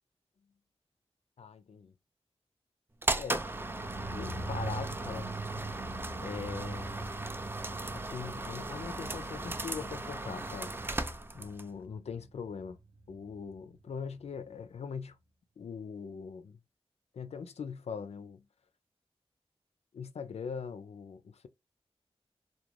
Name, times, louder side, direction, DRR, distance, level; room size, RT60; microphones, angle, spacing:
voice 1, 1.4-1.9 3.1-3.4 4.1-5.7 6.2-7.1 7.9-11.0 11.3-12.8 13.1-15.2 15.6-16.6 17.1-18.5 19.9-21.5, left 6 dB, 80° left, 0.4 m, -41 dB
sound 1, 3.0-11.7, right 2 dB, 20° right, 0.3 m, -37 dB
sound 2, 3.2-14.3 14.5-14.6, right 3 dB, 80° right, 0.6 m, -44 dB
2.4 x 2.2 x 3.0 m
wide cardioid pair, 70°, 11 cm